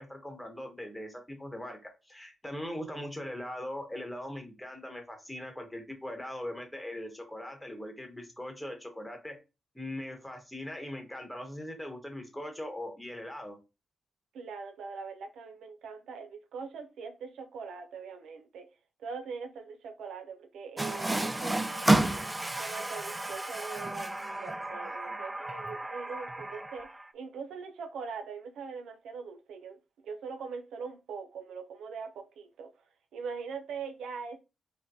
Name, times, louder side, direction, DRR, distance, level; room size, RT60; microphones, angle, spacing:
voice 1, 0.0-9.4 9.7-13.6, left 1 dB, 10° left, 1.1 m, -40 dB
voice 2, 14.3-18.7 19.0-22.2 22.5-26.9 27.1-29.8 30.0-32.7 33.1-34.4, right 5 dB, 90° right, 0.6 m, -42 dB
Water tap faucet, 20.8-27.1, right 2 dB, 15° right, 0.3 m, -31 dB
5.6 x 2.2 x 2.7 m
cardioid pair, 105°, 0 cm